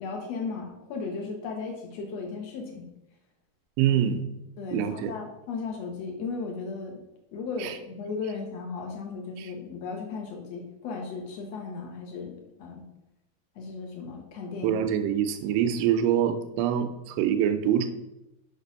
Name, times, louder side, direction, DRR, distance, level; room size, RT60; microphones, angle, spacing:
voice 1, 0.0-2.9 3.9-4.0 4.6-7.0 7.3-12.8 13.6-14.8, left 4 dB, 60° left, 1 dB, 1.8 m, -36 dB
voice 2, 3.8-4.2 4.7-5.1 7.6-7.7 9.4-9.5 14.6-17.9, right 9 dB, 85° right, 8 dB, 2.8 m, -25 dB
7.4 x 5.9 x 5.4 m, 0.91 s
omnidirectional pair, 5.0 m